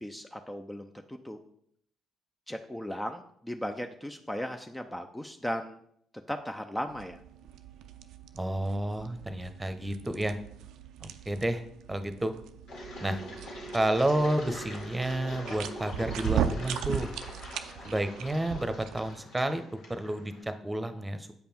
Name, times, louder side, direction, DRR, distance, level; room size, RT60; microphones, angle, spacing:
voice 1, 0.0-1.4 2.5-5.8 6.3-7.2, equal, 10° left, 6 dB, 0.7 m, -37 dB
sound 1, 6.9-19.2, right 9 dB, 70° right, 0.5 m, -38 dB
voice 2, 8.3-10.4 11.0-11.6 11.9-12.3 13.0-13.2 13.7-17.1 17.8-19.6 19.9-21.4, right 1 dB, 15° right, 10 dB, 1.1 m, -30 dB
Engine, 12.7-20.4, equal, 70° left, 2.5 m, -43 dB
8.5 x 5.2 x 4.5 m, 0.68 s
hypercardioid pair, 45°, 0 cm